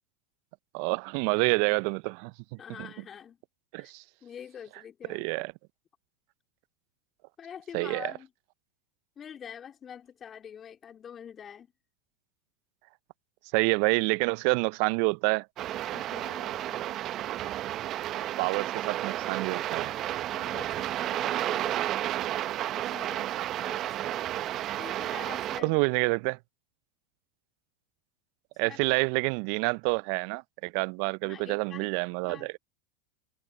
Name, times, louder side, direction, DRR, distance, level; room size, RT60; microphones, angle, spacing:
voice 1, 0.7-2.3 2.8-2.9 3.7-4.0 5.1-5.5 7.7-8.1 13.5-15.5 18.4-19.9 25.6-26.4 28.6-32.5, right 33 dB, 55° right, 0.5 m, -28 dB
voice 2, 2.6-3.4 3.8-3.9 4.2-5.2 7.4-8.3 9.2-11.7 15.9-16.8 20.3-21.8 22.7-24.2 24.8-25.8 28.6-29.0 31.2-31.9 32.2-32.6, left 8 dB, 30° left, 3.3 m, -46 dB
sound 1, 15.6-25.6, right 13 dB, 40° right, 1.0 m, -32 dB
hypercardioid pair, 90°, 0 cm